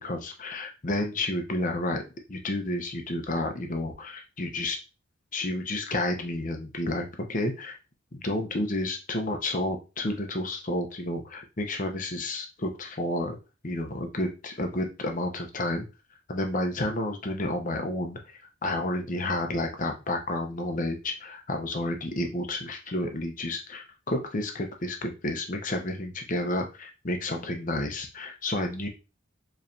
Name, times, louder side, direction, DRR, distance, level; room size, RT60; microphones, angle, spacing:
voice 1, 0.0-2.0 2.3-4.8 5.3-7.8 8.1-13.4 13.6-15.9 16.3-18.2 18.6-28.9, left 1 dB, 40° left, 4 dB, 0.8 m, -30 dB
4.8 x 3.2 x 2.7 m, 0.30 s
head